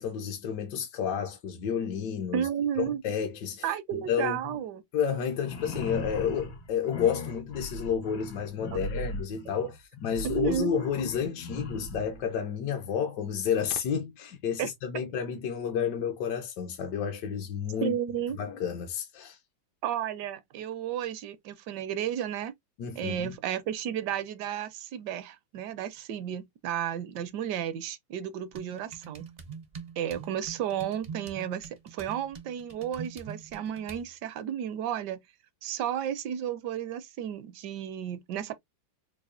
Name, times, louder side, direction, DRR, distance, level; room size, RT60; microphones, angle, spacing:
voice 1, 0.0-2.5 2.9-4.4 4.9-18.0 18.3-19.4 22.8-23.3, left 7 dB, 70° left, 1.2 m, -31 dB
voice 2, 2.3-3.0 3.6-4.8 8.7-8.8 10.2-10.7 14.6-14.7 17.8-18.4 19.8-22.5 23.0-29.3 30.0-35.2 35.6-38.5, right 10 dB, 75° right, 1.1 m, -33 dB
sound 1, 5.3-12.2, left 2 dB, 90° left, 2.2 m, -38 dB
sound 2, 28.5-34.1, right 6 dB, 60° right, 0.4 m, -44 dB
4.7 x 2.3 x 2.5 m
omnidirectional pair, 2.1 m